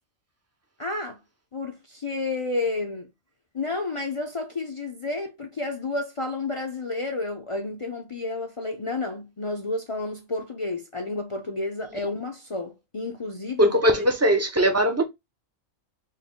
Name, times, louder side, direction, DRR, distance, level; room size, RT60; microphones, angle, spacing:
voice 1, 0.8-1.2 1.5-3.1 3.5-13.7 14.0-14.1, left 3 dB, 45° left, 0.4 m, -31 dB
voice 2, 13.6-15.0, equal, 25° right, 0.3 m, -20 dB
4.5 x 2.1 x 3.6 m
omnidirectional pair, 1.4 m